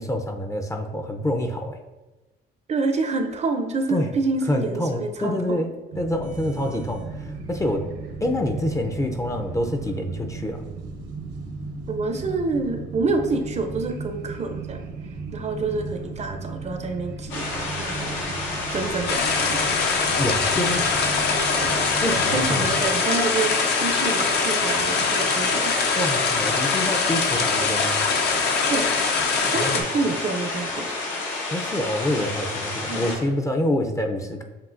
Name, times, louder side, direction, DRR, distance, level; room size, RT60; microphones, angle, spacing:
voice 1, 0.0-1.8 3.9-4.1 4.5-5.7 6.0-7.0 7.5-7.8 8.2-10.6 20.2-20.8 22.0-22.7 26.0-28.0 29.5-29.8 31.5-34.4, left 1 dB, 15° left, 4 dB, 0.5 m, -26 dB
voice 2, 2.7-5.7 11.9-14.8 15.3-18.3 18.7-19.5 21.5-25.7 28.7-29.0 29.4-31.0 32.9-33.1, right 3 dB, 35° right, 6 dB, 0.5 m, -28 dB
sound 1, 5.9-22.9, right 4 dB, 75° right, 0.9 m, -36 dB
sound 2, 17.3-33.2, left 2 dB, 85° left, 1.0 m, -30 dB
sound 3, 19.1-29.8, left 5 dB, 60° left, 0.7 m, -23 dB
7.3 x 2.7 x 2.5 m, 1.1 s
cardioid pair, 85°, 19 cm